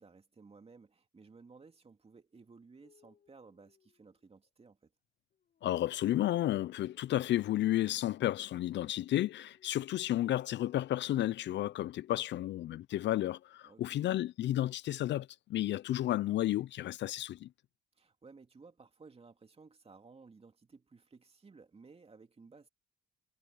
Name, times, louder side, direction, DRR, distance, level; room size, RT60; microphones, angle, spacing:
voice 1, 0.0-4.9 13.6-14.0 18.0-22.7, right 4 dB, 30° right, 2.6 m, -57 dB
sound 1, 2.8-4.5 5.3-8.0 8.8-11.4 12.5-13.1, left 7 dB, 50° left, 4.0 m, -67 dB
voice 2, 5.6-17.5, left 14 dB, 65° left, 0.4 m, -32 dB
cardioid pair, 90°, 20 cm